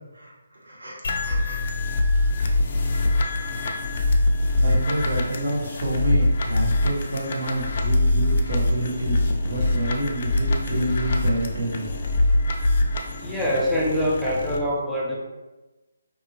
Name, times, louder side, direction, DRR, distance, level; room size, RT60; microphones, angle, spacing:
voice 1, 0.1-1.6 4.6-11.9, right 1 dB, 85° right, -3 dB, 0.8 m, -29 dB
sound 1, 1.0-14.6, left 2 dB, 50° left, 0.4 m, -23 dB
voice 2, 13.2-15.1, equal, 5° right, -7 dB, 0.5 m, -24 dB
2.7 x 2.5 x 2.8 m, 1.1 s
figure-of-eight pair, 150°, 0 cm